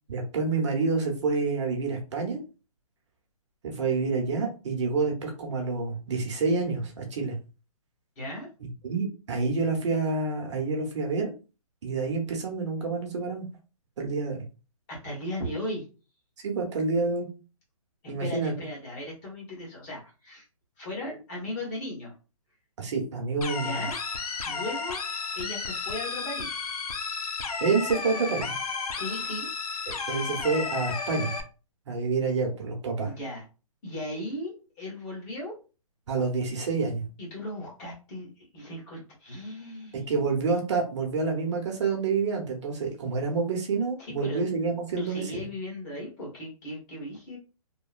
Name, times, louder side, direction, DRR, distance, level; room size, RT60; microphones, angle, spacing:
voice 1, 0.1-2.4 3.6-7.4 8.8-11.3 11.8-13.5 14.0-14.4 16.4-17.3 18.1-18.5 22.8-23.9 27.6-28.6 30.1-31.3 31.9-33.1 36.1-37.1 40.1-45.4, right 4 dB, 50° right, 2 dB, 0.8 m, -28 dB
voice 2, 8.2-8.5 14.9-15.8 18.2-20.4 20.8-22.1 23.6-24.0 24.4-25.0 25.3-26.6 29.0-29.8 33.0-33.4 33.8-34.5 34.8-35.5 37.2-40.0 44.0-44.4 45.0-47.4, left 1 dB, 25° left, -3 dB, 1.2 m, -37 dB
sound 1, 23.4-31.4, left 4 dB, 80° left, 0.7 m, -33 dB
2.9 x 2.2 x 2.4 m, 0.32 s
hypercardioid pair, 155°, 19 cm